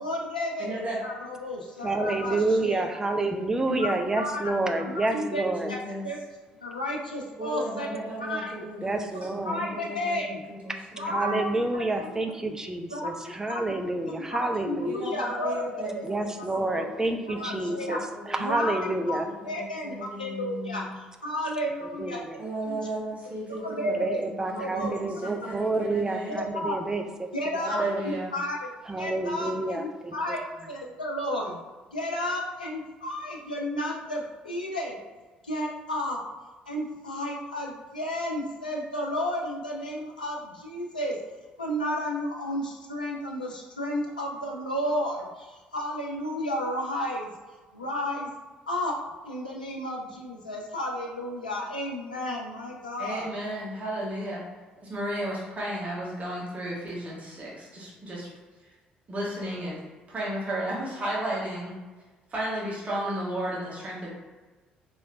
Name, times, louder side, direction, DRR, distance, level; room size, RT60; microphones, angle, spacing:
voice 1, 0.0-2.9 3.7-3.9 4.2-5.4 5.7-5.8 6.0-6.2 6.6-7.9 8.2-8.6 9.4-10.4 11.0-11.4 12.0-12.2 12.4-12.5 12.9-13.1 13.5-13.8 14.3-16.1 16.7-16.9 17.4-18.0 18.4-22.2 22.6-22.9 23.6-24.9 25.6-25.7 26.4-26.8 27.3-28.7 29.0-30.4 30.7-31.6 31.9-35.0 35.4-36.2 36.7-41.2 41.6-47.3 47.7-48.3 48.7-48.9 49.2-53.3, left 1 dB, 85° left, -2 dB, 0.5 m, -32 dB
voice 2, 0.6-1.0 3.7-4.0 4.3-6.0 7.4-11.5 14.8-18.9 19.2-20.9 22.4-24.1 24.4-26.5 27.7-28.3 29.5-29.6 53.0-54.4 54.8-58.3 59.1-59.8 60.1-61.8 62.3-64.1, right 1 dB, 30° right, -5 dB, 1.3 m, -35 dB
voice 3, 1.8-5.7 8.8-9.6 11.0-15.0 16.0-18.0 18.3-19.3 21.8-22.4 23.9-27.3 27.5-28.0 28.9-30.4, right 2 dB, 15° right, 4 dB, 0.5 m, -29 dB
4.2 x 3.1 x 2.6 m, 1.3 s
figure-of-eight pair, 50°, 4 cm